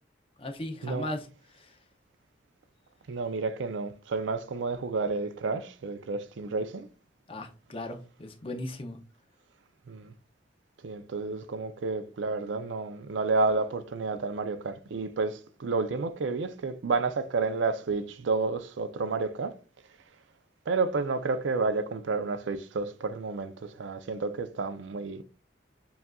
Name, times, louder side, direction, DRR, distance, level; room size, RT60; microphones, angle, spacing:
voice 1, 0.4-1.8 7.3-9.0, left 1 dB, 30° left, 0.5 m, -37 dB
voice 2, 3.1-6.9 9.9-10.1 10.8-19.6 20.7-25.2, right 3 dB, 85° right, 0.5 m, -30 dB
6.8 x 2.4 x 2.3 m
head